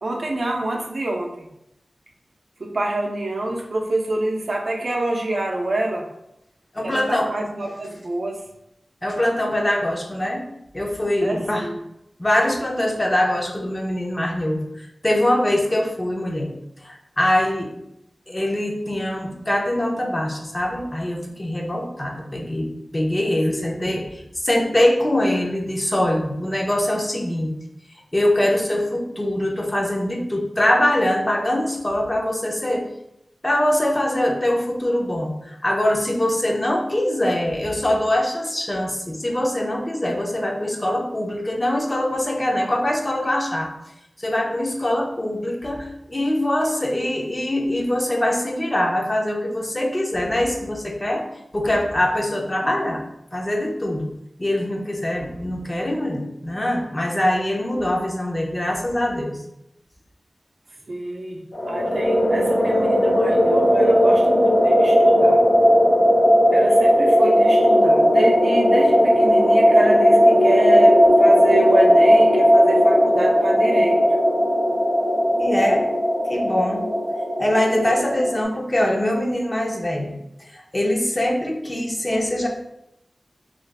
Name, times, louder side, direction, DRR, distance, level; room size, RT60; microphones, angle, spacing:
voice 1, 0.0-1.5 2.6-6.1 6.8-8.4 11.2-11.8 23.6-23.8 60.9-61.4 61.7-65.4 66.5-74.0, right 2 dB, 70° right, 0 dB, 0.5 m, -26 dB
voice 2, 6.7-7.3 9.0-10.5 10.7-11.7 12.2-16.5 16.8-17.7 18.3-27.6 28.1-32.8 33.4-43.7 44.2-51.3 51.5-53.0 53.3-54.1 54.4-59.4 75.3-75.9 76.3-76.9 77.4-80.2 80.5-82.5, left 1 dB, 30° left, 1 dB, 0.6 m, -23 dB
sound 1, 61.5-78.4, equal, 85° left, 0.6 m, -16 dB
2.4 x 2.4 x 3.3 m, 0.82 s
cardioid pair, 40°, 0 cm